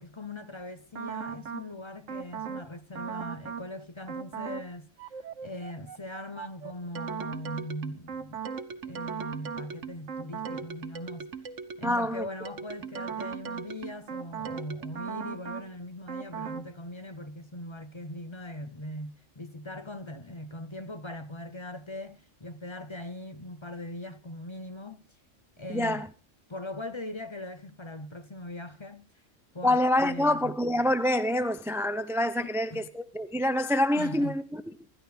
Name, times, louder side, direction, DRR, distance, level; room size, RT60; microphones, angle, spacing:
voice 1, 0.0-8.4 8.8-11.3 11.8-25.0 25.6-26.1 26.5-29.1 29.5-30.6 32.4-32.9 34.0-34.4, left 1 dB, 25° left, 0.7 m, -40 dB
sound 1, 1.0-1.7 2.1-2.7 3.0-3.7 4.1-4.7 5.0-12.0 12.5-15.7 16.1-16.7, right 6 dB, 75° right, 1.4 m, -38 dB
voice 2, 11.8-12.2 25.7-26.1 29.6-34.6, left 1 dB, 5° right, 0.3 m, -26 dB
25.5 x 12.0 x 3.4 m
omnidirectional pair, 1.3 m